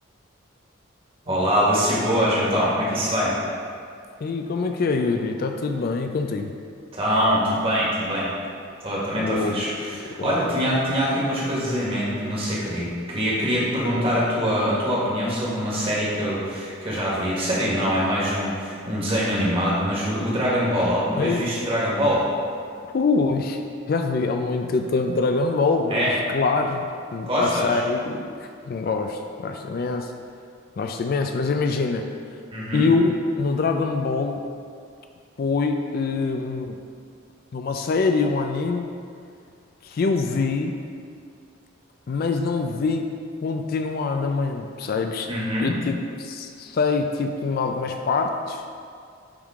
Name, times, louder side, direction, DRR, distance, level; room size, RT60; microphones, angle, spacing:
voice 1, 1.2-3.4 6.9-8.3 8.8-22.3 25.9-26.1 27.2-27.8 32.5-32.9 45.3-45.8, equal, 30° right, -6 dB, 1.5 m, -24 dB
voice 2, 4.2-6.5 9.1-9.6 9.9-10.4 21.2-21.5 22.8-23.6 23.9-30.1 30.8-32.1 32.7-34.5 35.4-36.8 37.5-38.9 39.8-40.8 42.1-43.1 43.4-45.3 45.6-48.6, left 4 dB, 50° left, 5 dB, 0.3 m, -24 dB
9.7 x 3.7 x 3.6 m, 2.3 s
head